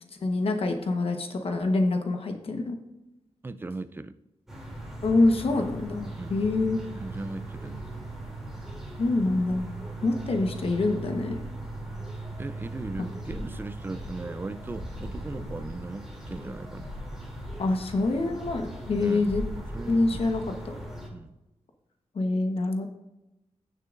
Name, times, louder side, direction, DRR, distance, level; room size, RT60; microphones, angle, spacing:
voice 1, 0.2-2.8 5.0-6.8 9.0-9.7 10.0-11.4 17.6-19.4 19.9-20.7 22.1-22.9, left 2 dB, 55° left, 5 dB, 1.1 m, -26 dB
voice 2, 3.4-4.1 6.2-6.4 6.9-7.9 9.9-10.0 12.4-17.0 19.0-19.3 19.7-20.2 21.1-21.3, right 2 dB, 20° right, 12 dB, 0.4 m, -38 dB
sound 1, 4.5-21.1, right 1 dB, 5° right, 2.7 m, -38 dB
16.0 x 6.7 x 2.5 m, 0.97 s
wide cardioid pair, 130°, 11 cm